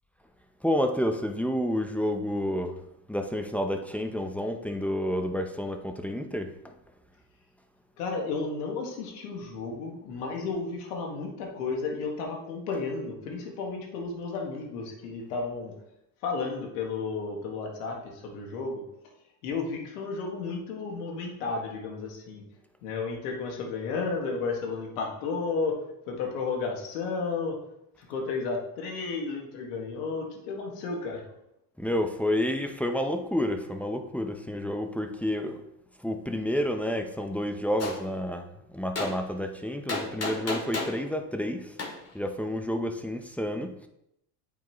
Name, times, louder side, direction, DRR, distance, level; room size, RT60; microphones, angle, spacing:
voice 1, 0.6-2.8 3.1-6.7 31.8-35.6 36.0-41.7 42.1-43.9, equal, 5° left, 5 dB, 0.8 m, -30 dB
voice 2, 8.0-15.7 16.2-18.8 19.4-22.4 22.8-25.8 26.1-27.6 28.0-31.2, left 4 dB, 90° left, 0 dB, 2.0 m, -33 dB
Gunshot gunfire, 37.8-38.0 39.0-39.1 39.9-41.0 41.8-41.9, left 3 dB, 35° left, 2.5 m, -31 dB
8.6 x 6.1 x 3.1 m, 0.80 s
supercardioid pair, 85°, 45 cm